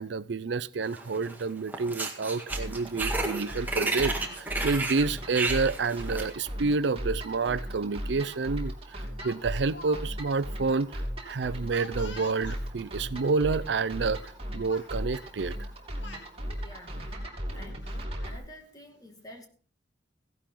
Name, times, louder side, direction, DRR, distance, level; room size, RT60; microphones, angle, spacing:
voice 1, 0.0-10.9 11.2-14.2 14.5-15.6, right 4 dB, 80° right, 0.5 m, -29 dB
sound 1, 0.9-1.4 1.7-6.3, right 3 dB, 10° right, 1.8 m, -32 dB
sound 2, 2.5-18.4, equal, 35° right, 3.0 m, -37 dB
Speech, 4.0-5.1 6.1-6.3 7.5-7.6 8.0-8.2 9.2-10.0 10.3-10.4 11.7-12.6 13.5-13.6 14.0-14.4 14.7-14.9 15.7-16.3, left 3 dB, 90° left, 1.9 m, -47 dB
voice 2, 16.5-17.0 17.5-17.9 18.2-19.5, left 1 dB, 20° left, 2.2 m, -49 dB
16.0 x 11.5 x 3.8 m
head